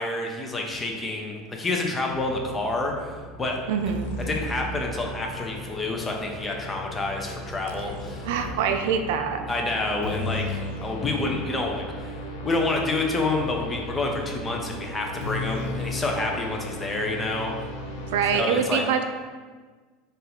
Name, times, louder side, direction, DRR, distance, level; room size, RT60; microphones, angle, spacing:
voice 1, 0.0-3.1 3.4-3.6 4.3-8.3 9.5-12.1 12.4-17.5 18.3-18.8, left 2 dB, 20° left, 1 dB, 0.8 m, -28 dB
sound 1, 2.1-18.4, left 1 dB, 70° left, 0.6 m, -36 dB
voice 2, 3.7-4.2 8.2-9.4 18.1-19.0, right 7 dB, 70° right, 6 dB, 0.3 m, -24 dB
4.1 x 2.6 x 3.9 m, 1.4 s
hypercardioid pair, 75°, 0 cm